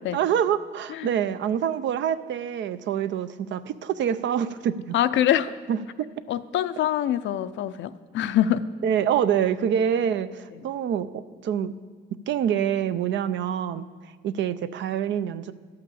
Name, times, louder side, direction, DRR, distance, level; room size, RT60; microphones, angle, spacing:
voice 1, 0.1-4.9 5.7-6.1 8.8-11.7 12.1-15.5, right 9 dB, 70° right, 13 dB, 0.5 m, -26 dB
voice 2, 4.9-5.5 6.3-8.6, left 11 dB, 70° left, 13 dB, 0.5 m, -24 dB
12.0 x 5.8 x 6.9 m, 1.5 s
cardioid pair, 90°, 20 cm